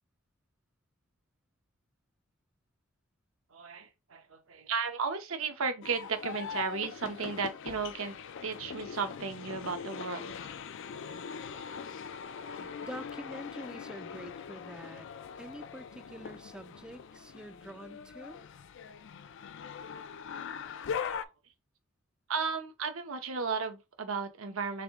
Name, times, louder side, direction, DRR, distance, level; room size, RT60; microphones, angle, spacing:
voice 1, 3.5-8.2 8.4-10.4 20.8-21.1 22.3-24.8, right 5 dB, 75° right, 0.9 m, -34 dB
sound 1, 5.8-21.3, left 7 dB, 60° left, 0.4 m, -42 dB
voice 2, 12.6-15.1 15.4-18.4, equal, 5° right, 0.4 m, -46 dB
3.5 x 3.5 x 3.6 m
head